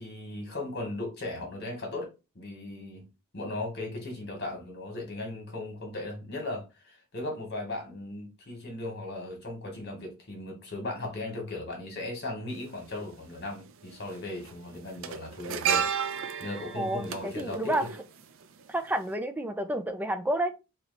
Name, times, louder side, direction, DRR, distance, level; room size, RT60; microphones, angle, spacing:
voice 1, 0.0-2.1 2.3-3.1 3.3-15.8 16.4-17.9, left 2 dB, 50° left, 1.7 m, -37 dB
sound 1, 12.5-12.6 13.8-14.1 14.4-18.7 19.0-19.1, right 7 dB, 60° right, 0.5 m, -32 dB
voice 2, 16.8-17.9 18.7-20.5, right 1 dB, 10° right, 0.4 m, -30 dB
3.1 x 2.8 x 4.1 m
head